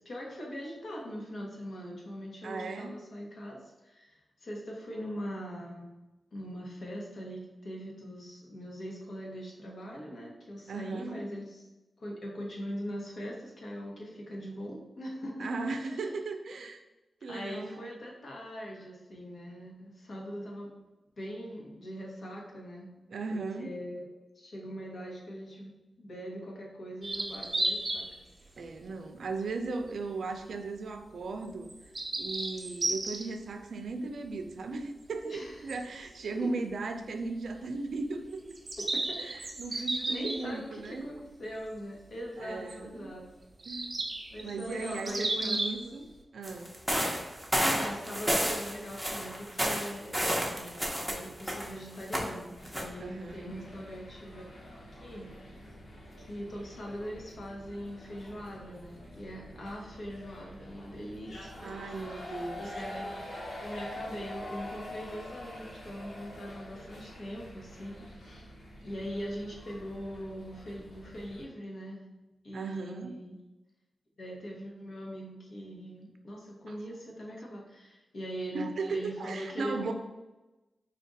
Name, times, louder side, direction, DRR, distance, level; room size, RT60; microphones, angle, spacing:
voice 1, 0.0-5.9 6.3-11.6 12.0-15.5 15.7-16.1 17.3-20.7 21.2-22.9 23.3-24.1 24.3-28.0 28.4-28.7 35.2-35.8 36.3-36.5 38.9-39.2 39.7-43.2 44.3-46.0 47.5-50.2 50.5-52.5 52.8-54.7 55.0-55.3 56.2-61.8 62.2-63.1 63.6-68.5 68.8-72.0 72.4-73.4 74.2-79.9, equal, 60° left, -2 dB, 1.2 m, -41 dB
voice 2, 2.4-2.9 10.7-11.2 15.4-16.8 17.2-17.9 23.1-23.7 28.6-31.7 32.2-38.6 39.2-41.1 42.4-43.1 43.7-44.0 44.4-46.1 46.3-46.7 53.0-53.5 61.6-62.7 72.5-73.1 76.7-76.8 78.5-79.9, right 3 dB, 85° right, 5 dB, 0.4 m, -37 dB
sound 1, 27.0-28.1 28.6-28.9 29.7-29.8 31.6-33.2 35.7-35.8 36.0-36.1 38.5-40.9 42.7-42.8 43.6-45.8, right 2 dB, 35° right, 0.6 m, -33 dB
sound 2, 46.4-51.7 52.0-52.3 52.6-52.8, equal, ahead, 0.8 m, -30 dB
sound 3, 52.6-71.4, left 1 dB, 85° left, 1.2 m, -46 dB
4.4 x 2.5 x 4.0 m, 1.1 s
wide cardioid pair, 110°, 0 cm